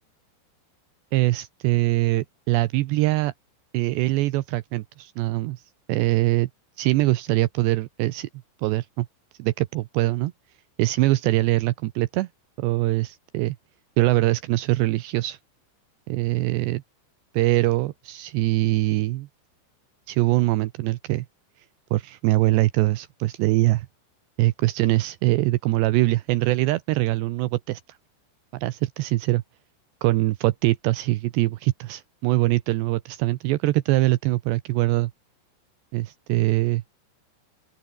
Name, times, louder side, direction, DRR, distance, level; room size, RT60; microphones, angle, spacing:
voice 1, 1.1-3.3 3.7-5.6 5.9-6.5 6.8-8.3 8.6-9.1 9.4-10.3 10.8-12.3 12.6-13.6 14.0-15.4 16.1-16.8 17.3-19.3 20.1-21.3 21.9-23.9 24.4-28.0 28.5-29.4 30.0-35.1 35.9-36.8, right 18 dB, 80° right, 2.6 m, -23 dB
open air
omnidirectional pair, 5.9 m